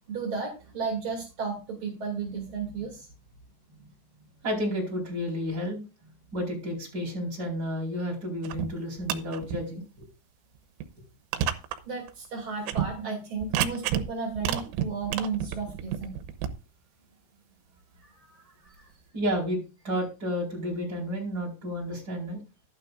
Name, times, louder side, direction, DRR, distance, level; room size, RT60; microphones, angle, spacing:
voice 1, 0.1-3.1 3.7-3.9 11.9-16.1 18.0-18.9, right 5 dB, 40° right, -1 dB, 2.0 m, -34 dB
voice 2, 4.4-5.8 6.3-10.1 19.1-19.6 19.8-22.4, equal, 20° right, -3 dB, 4.5 m, -31 dB
sound 1, 8.4-8.7 9.0-9.6 10.0-10.1 10.8-10.9 11.3-11.8 12.1-12.2 12.6-12.9 13.4-14.1 14.4-16.5, right 10 dB, 90° right, 3.5 m, -29 dB
12.5 x 11.5 x 2.5 m, 0.32 s
omnidirectional pair, 5.7 m